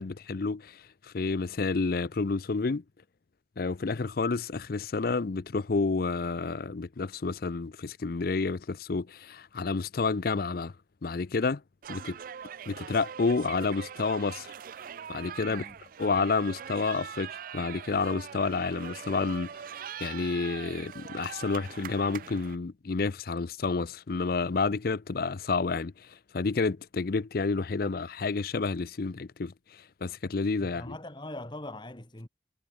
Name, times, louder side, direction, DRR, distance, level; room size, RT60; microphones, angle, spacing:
voice 1, 0.0-2.8 3.6-10.7 11.0-11.6 11.9-12.2 12.7-14.5 15.1-15.6 16.0-19.5 20.0-30.9, left 4 dB, 55° left, 0.5 m, -30 dB
sound 1, 11.8-22.6, right 8 dB, 50° right, 0.4 m, -42 dB
voice 2, 15.4-15.8 30.6-32.3, left 1 dB, 25° left, 1.8 m, -41 dB
head